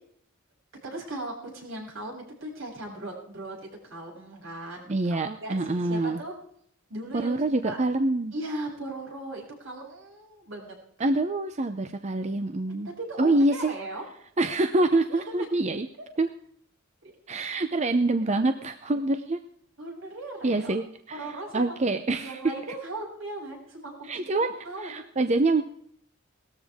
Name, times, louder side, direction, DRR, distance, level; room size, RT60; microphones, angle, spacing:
voice 1, 0.8-3.6 3.8-6.3 6.9-7.3 7.6-7.8 8.3-10.7 13.0-14.0 15.1-15.6 17.0-17.1 18.9-19.0 19.8-20.7 21.1-21.8 22.2-25.1, right 2 dB, 80° right, -1 dB, 7.0 m, -38 dB
voice 2, 4.9-6.2 7.1-8.3 11.0-12.9 13.2-13.7 14.4-15.9 16.2-16.3 17.3-19.4 20.4-22.4 24.0-24.5 24.8-25.6, right 2 dB, 35° right, 8 dB, 0.7 m, -26 dB
19.0 x 13.5 x 3.6 m, 0.65 s
head